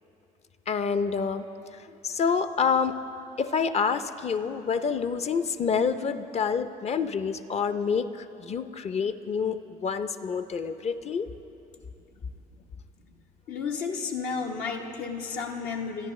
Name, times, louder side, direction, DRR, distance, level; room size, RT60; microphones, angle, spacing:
voice 1, 0.7-1.5 2.0-3.0 3.4-11.3, left 6 dB, 40° left, 11 dB, 0.6 m, -27 dB
voice 2, 13.5-16.1, left 5 dB, 75° left, 1 dB, 1.0 m, -32 dB
25.5 x 10.0 x 3.2 m, 2.9 s
cardioid pair, 90°, 16 cm